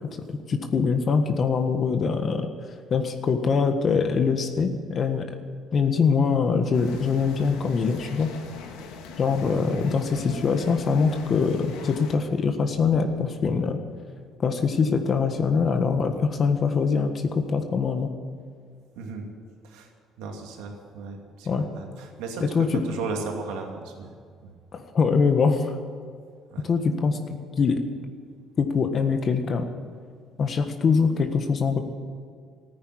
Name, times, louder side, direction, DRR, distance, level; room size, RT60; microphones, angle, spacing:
voice 1, 0.5-2.5 2.9-5.2 5.7-8.3 9.2-13.8 14.4-18.1 21.5-21.7 22.5-22.7 24.7-25.7 26.6-27.2 27.6-27.8 28.6-29.7 30.4-31.8, left 5 dB, 45° left, 7 dB, 1.5 m, -23 dB
sound 1, 6.7-12.2, left 5 dB, 90° left, 1.7 m, -42 dB
voice 2, 9.3-9.9 18.9-19.3 19.6-19.9 20.2-24.1 24.4-24.5 26.5-26.6, right 4 dB, 90° right, 2 dB, 2.5 m, -36 dB
14.5 x 9.5 x 9.8 m, 2.1 s
cardioid pair, 90°, 0 cm